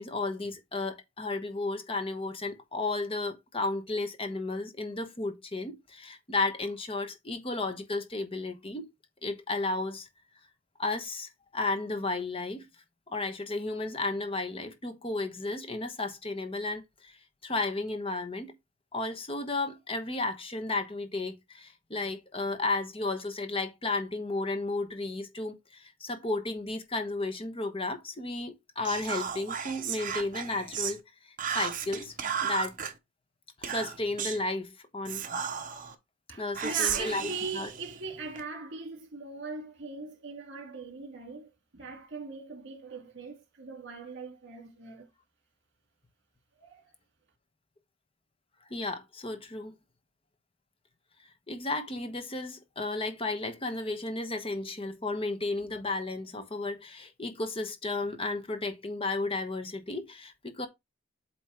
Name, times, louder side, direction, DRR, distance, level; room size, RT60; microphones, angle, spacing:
voice 1, 0.0-8.9 9.2-10.1 10.8-12.7 13.1-17.2 17.4-18.6 18.9-31.0 31.5-32.1 32.4-32.7 33.6-35.2 36.4-37.3 37.5-37.7 48.7-49.7 51.5-60.7, left 2 dB, 30° left, 1.1 m, -33 dB
Whispering, 28.8-31.0 31.4-32.9 33.6-34.4 35.0-35.9 36.5-38.4, right 8 dB, 40° right, 0.9 m, -34 dB
voice 2, 36.3-45.1 46.6-46.9, right 4 dB, 65° right, 2.1 m, -40 dB
8.3 x 3.1 x 4.5 m
head